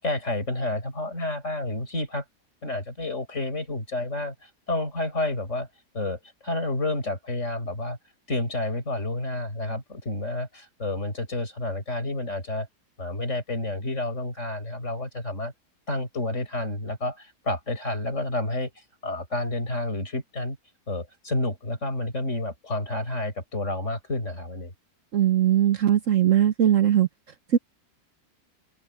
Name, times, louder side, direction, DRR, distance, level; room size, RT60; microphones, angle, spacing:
voice 1, 0.0-2.2 2.6-5.7 5.9-8.0 8.3-12.7 13.0-15.5 15.9-18.7 19.0-20.6 20.9-24.7, left 2 dB, 45° left, 6.6 m, -30 dB
voice 2, 25.1-27.1 27.5-27.6, right 10 dB, 60° right, 1.1 m, -20 dB
omnidirectional pair, 1.7 m